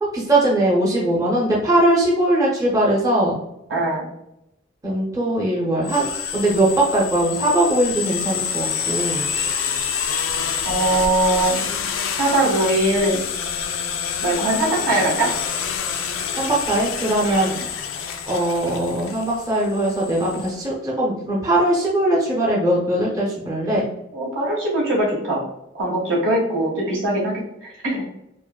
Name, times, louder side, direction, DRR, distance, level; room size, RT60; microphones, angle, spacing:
voice 1, 0.0-3.4 4.8-9.3 16.3-17.5 18.3-23.9, right 1 dB, 15° right, -5 dB, 0.6 m, -20 dB
voice 2, 3.7-4.0 10.6-11.5 12.2-13.2 14.2-15.3 17.2-17.5 24.1-25.4 25.7-28.1, right 1 dB, 75° right, -4 dB, 1.3 m, -21 dB
sound 1, 5.8-20.5, left 7 dB, 80° left, 0.4 m, -27 dB
4.6 x 2.0 x 2.2 m, 0.83 s
head